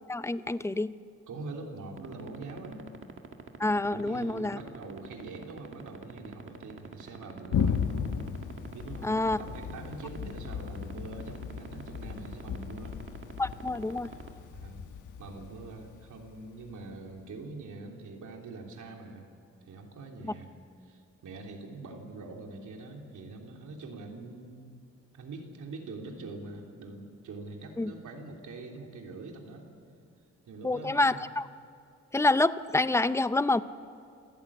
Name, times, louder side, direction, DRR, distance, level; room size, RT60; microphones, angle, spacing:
voice 1, 0.1-0.9 3.6-4.6 9.0-9.4 13.4-14.1 27.8-27.9 30.6-31.5 32.1-33.6, left 2 dB, 10° left, 14 dB, 0.5 m, -27 dB
voice 2, 1.3-2.8 3.9-7.8 8.7-13.0 14.0-14.2 14.5-14.8 15.2-19.2 19.7-20.5 20.8-24.7 25.1-29.7 30.5-31.2, right 3 dB, 85° right, 1 dB, 3.2 m, -44 dB
sound 1, 2.0-14.3, right 6 dB, 45° right, 1.8 m, -43 dB
Thunder, 7.5-16.9, left 7 dB, 85° left, 1.3 m, -36 dB
28.0 x 15.0 x 8.6 m, 2.5 s
cardioid pair, 115°, 29 cm